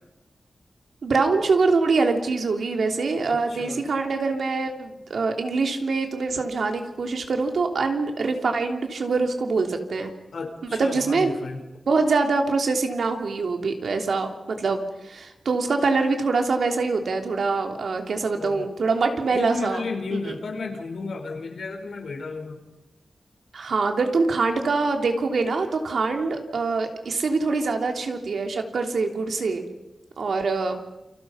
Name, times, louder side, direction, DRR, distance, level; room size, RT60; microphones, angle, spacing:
voice 1, 1.0-10.1 10.7-11.3 11.9-19.8 20.1-20.3 23.5-29.6 30.2-30.8, right 4 dB, 80° right, 4 dB, 3.1 m, -24 dB
voice 2, 3.2-3.9 10.3-11.6 18.3-18.7 19.3-22.6, left 4 dB, 80° left, 3 dB, 4.9 m, -33 dB
29.0 x 28.0 x 5.7 m, 1.0 s
wide cardioid pair, 130°, 0 cm